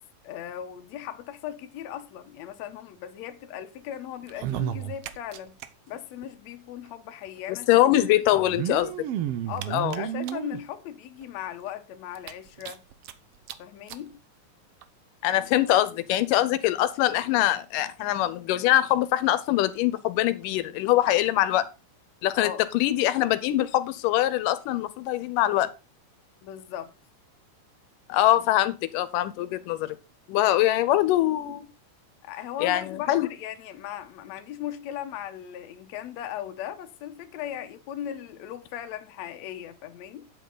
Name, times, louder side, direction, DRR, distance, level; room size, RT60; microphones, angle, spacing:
voice 1, 0.2-5.5 5.9-7.8 8.1-8.5 9.5-12.8 13.6-14.2 22.3-22.6 26.4-26.9 32.2-40.3, left 10 dB, 65° left, 2.1 m, -38 dB
sound 1, 4.2-5.7 5.9-6.0 6.2-6.3 7.4-7.5 8.3-10.6 11.2-11.3 11.7-11.8 12.2-13.1 13.5-13.6 13.9-14.0 14.8-14.9, right 11 dB, 80° right, 1.4 m, -32 dB
voice 2, 7.5-9.1 9.7-10.0 15.2-21.7 22.2-25.7 28.1-30.0 30.3-31.7 32.6-33.3, left 14 dB, 90° left, 2.4 m, -23 dB
9.3 x 8.2 x 3.9 m
omnidirectional pair, 3.7 m